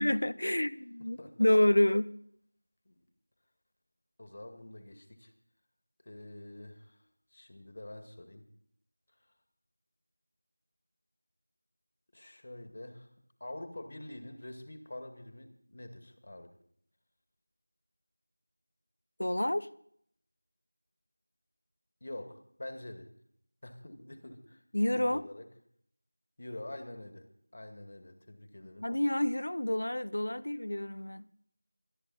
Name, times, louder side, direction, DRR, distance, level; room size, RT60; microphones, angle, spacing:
voice 1, 0.0-2.1 19.2-19.7 24.7-25.3 28.8-31.2, left 1 dB, 60° left, 0.8 m, -28 dB
voice 2, 1.0-1.5 2.9-3.0 4.2-5.3 6.0-7.0 7.3-8.4 12.1-13.1 13.4-16.5 22.0-23.1 23.6-25.5 26.4-28.9, left 1 dB, 40° left, 2.1 m, -46 dB
25.5 x 9.7 x 4.2 m
figure-of-eight pair, 175°, 0 cm